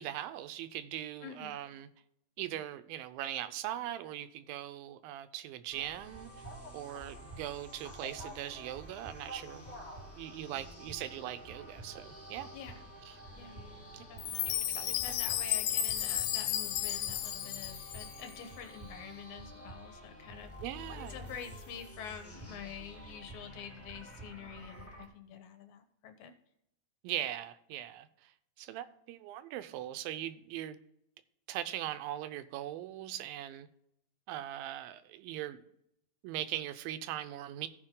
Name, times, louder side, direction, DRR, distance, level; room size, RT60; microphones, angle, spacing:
voice 1, 0.0-1.9 2.4-6.3 6.7-9.7 10.2-12.5 13.1-13.2 13.9-14.0 14.4-14.9 20.6-21.3 27.0-28.3 28.6-30.8 31.5-33.7 34.3-35.6 36.2-37.7, right 12 dB, 85° right, 12 dB, 2.4 m, -40 dB
voice 2, 1.2-1.6 12.5-12.9 13.4-13.6 14.1-20.5 21.1-26.3, left 7 dB, 70° left, 7 dB, 2.1 m, -47 dB
sound 1, 5.7-25.1, right 1 dB, 15° left, 0.5 m, -49 dB
Chime, 14.2-18.4, left 11 dB, 85° left, 2.4 m, -33 dB
15.5 x 5.2 x 3.7 m, 0.77 s
omnidirectional pair, 4.2 m